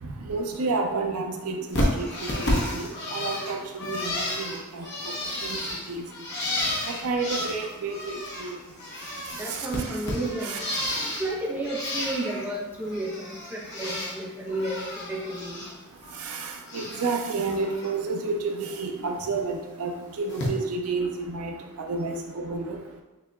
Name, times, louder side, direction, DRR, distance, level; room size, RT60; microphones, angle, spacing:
voice 1, 0.0-4.9 5.4-5.6 5.9-6.0 6.9-8.6 9.5-10.0 10.4-10.7 16.2-21.5 21.9-22.8, right 3 dB, 70° right, 3 dB, 0.5 m, -30 dB
Bird, 1.7-8.5 8.8-11.3 11.6-12.5 12.8-14.2 14.5-15.7 16.0-17.1 17.5-17.9 19.2-19.3 20.3-20.5, left 1 dB, 50° left, 1.0 m, -31 dB
voice 2, 9.4-10.6 11.2-15.7, right 1 dB, 10° right, -4 dB, 0.8 m, -32 dB
6.6 x 2.8 x 2.4 m, 1.1 s
head